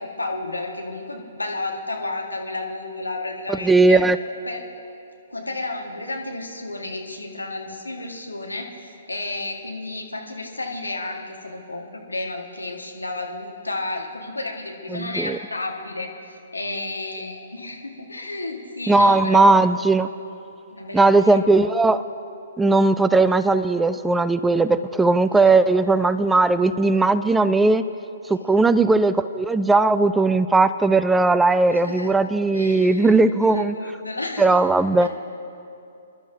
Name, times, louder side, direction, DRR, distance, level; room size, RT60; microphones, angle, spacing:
voice 1, 0.0-4.0 4.5-4.6 5.3-19.7 20.7-21.4 25.3-25.5 28.4-28.7 31.7-32.1 32.5-33.1 33.5-34.6 35.0-35.1, left 2 dB, 85° left, 1 dB, 1.6 m, -32 dB
voice 2, 3.6-4.2 14.9-15.4 18.9-20.1 20.9-22.0 22.6-27.8 28.3-33.8 34.4-35.1, right 3 dB, 5° right, 13 dB, 0.3 m, -18 dB
26.0 x 12.0 x 2.7 m, 2.7 s
figure-of-eight pair, 125°, 0 cm